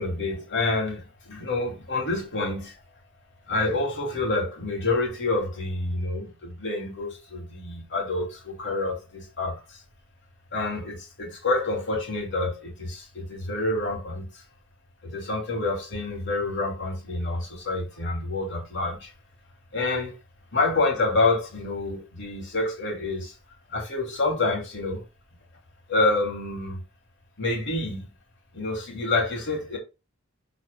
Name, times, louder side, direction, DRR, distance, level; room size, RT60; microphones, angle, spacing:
voice 1, 0.0-2.7 3.5-9.8 10.5-14.2 15.0-19.1 19.7-20.2 20.5-23.3 23.7-25.0 25.9-26.8 27.4-28.1 28.5-29.8, left 2 dB, 55° left, 2.4 m, -27 dB
12.0 x 4.1 x 2.2 m
head